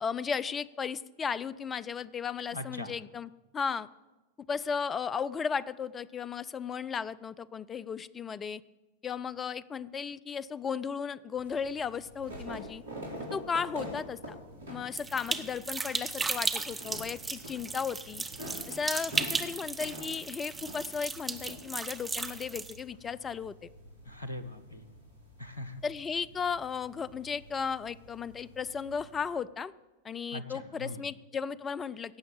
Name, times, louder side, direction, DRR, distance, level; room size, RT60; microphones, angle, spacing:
voice 1, 0.0-3.9 4.4-8.6 9.0-12.8 13.3-14.4 14.7-18.2 18.7-23.7 25.8-29.7 30.0-32.2, left 6 dB, 20° left, 17 dB, 0.5 m, -35 dB
voice 2, 2.5-3.0 24.1-24.9 25.4-25.8 30.3-31.1, left 1 dB, 80° left, 12 dB, 1.0 m, -41 dB
sound 1, 11.4-29.2, equal, 70° right, 3.1 m, -47 dB
sound 2, 14.9-22.8, right 4 dB, 10° right, 0.8 m, -35 dB
17.0 x 7.1 x 8.4 m, 1.1 s
figure-of-eight pair, 90°, 0 cm